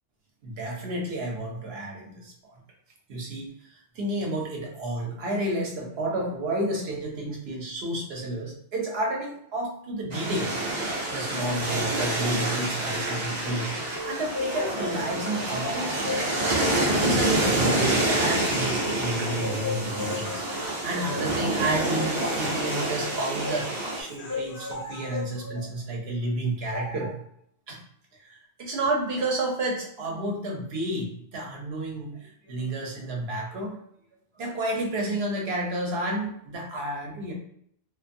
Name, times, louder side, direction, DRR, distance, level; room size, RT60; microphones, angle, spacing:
voice 1, 0.4-2.3 3.1-10.5 11.1-16.0 17.0-20.4 20.8-27.2 27.7-27.8 28.2-33.8 34.4-37.3, right 1 dB, 70° right, -1 dB, 1.0 m, -31 dB
sound 1, 10.1-24.0, right 1 dB, 45° right, 0.7 m, -27 dB
sound 2, 13.9-19.0 19.4-23.7 24.3-25.7 26.7-27.2, left 3 dB, 35° left, 0.3 m, -36 dB
Human voice, 17.2-25.2, left 4 dB, 60° left, 0.7 m, -42 dB
2.5 x 2.5 x 2.5 m, 0.67 s
omnidirectional pair, 1.1 m